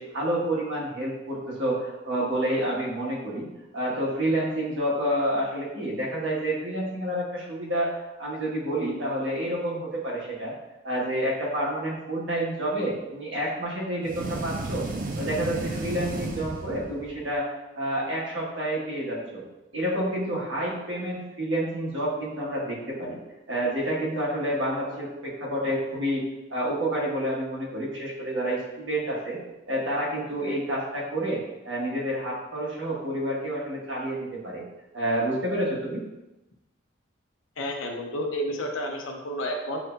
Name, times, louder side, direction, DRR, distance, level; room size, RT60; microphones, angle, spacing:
voice 1, 0.0-3.5 3.7-10.5 10.8-14.9 15.1-17.5 17.7-19.4 19.7-23.2 23.5-26.2 26.5-29.4 29.7-34.6 34.9-36.0, right 1 dB, 70° right, -5 dB, 1.4 m, -29 dB
sound 1, 14.0-17.2, right 2 dB, 45° right, 0.4 m, -33 dB
voice 2, 37.6-39.8, equal, 75° left, 2 dB, 0.7 m, -31 dB
7.5 x 2.8 x 2.2 m, 0.99 s
head